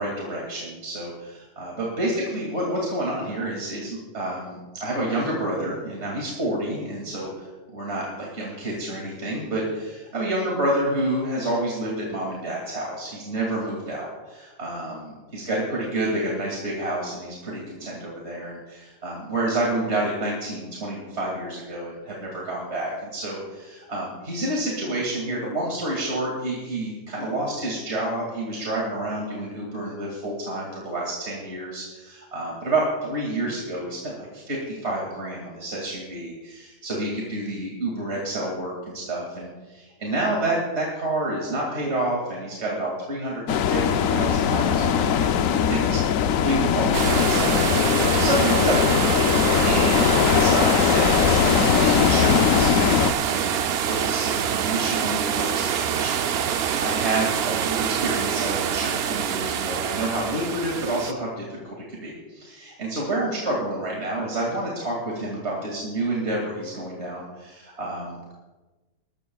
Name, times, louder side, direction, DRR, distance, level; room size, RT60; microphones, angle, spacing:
voice 1, 0.0-46.0 46.3-47.8 48.1-49.0 49.3-56.2 56.7-68.3, right 1 dB, 40° right, -3 dB, 2.6 m, -29 dB
sound 1, 43.5-53.1, left 8 dB, 65° left, 0.9 m, -20 dB
sound 2, 46.9-61.1, right 8 dB, 75° right, 0.5 m, -25 dB
20.5 x 14.0 x 2.3 m, 1.2 s
omnidirectional pair, 1.7 m